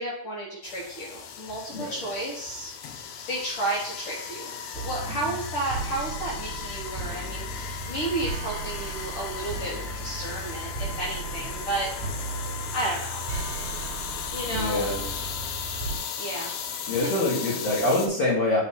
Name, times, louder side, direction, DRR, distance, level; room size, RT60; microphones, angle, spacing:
voice 1, 0.0-2.7 3.3-11.9 12.7-13.2 14.3-14.8 16.2-17.1, right 1 dB, 75° left, -4 dB, 1.2 m, -32 dB
sound 1, 0.6-18.1, left 7 dB, 90° left, 2.4 m, -36 dB
sound 2, 4.7-16.0, right 3 dB, 75° right, 2.4 m, -36 dB
voice 2, 14.5-15.0 16.9-18.6, left 2 dB, 55° left, -8 dB, 2.4 m, -25 dB
8.7 x 3.1 x 3.7 m, 0.69 s
omnidirectional pair, 3.9 m